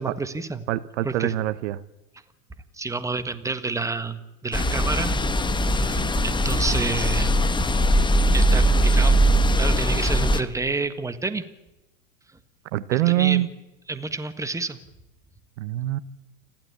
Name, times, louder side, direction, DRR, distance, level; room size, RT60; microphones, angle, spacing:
voice 1, 0.0-0.6 1.0-1.3 2.8-5.1 5.6-7.3 8.3-11.4 12.9-13.4 13.9-14.8, right 3 dB, 5° right, 1.6 m, -29 dB
voice 2, 0.7-1.8 12.7-13.5 15.6-16.0, right 15 dB, 60° right, 1.1 m, -24 dB
sound 1, 4.5-10.4, equal, 10° left, 1.3 m, -20 dB
29.0 x 12.5 x 8.4 m
hypercardioid pair, 95°, 41 cm